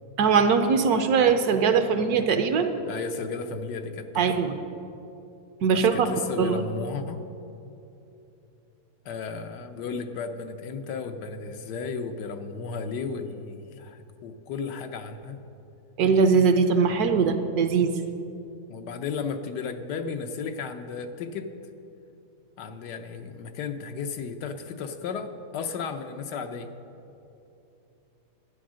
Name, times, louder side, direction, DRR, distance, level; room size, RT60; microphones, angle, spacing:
voice 1, 0.2-2.7 4.2-4.5 5.6-6.1 6.4-6.5 16.0-17.9, right 5 dB, 70° right, 8 dB, 1.2 m, -21 dB
voice 2, 2.9-4.3 5.7-7.2 9.0-15.4 17.2-17.3 18.7-21.5 22.6-26.7, left 5 dB, 85° left, 7 dB, 1.4 m, -34 dB
11.5 x 9.4 x 6.2 m, 2.8 s
omnidirectional pair, 1.8 m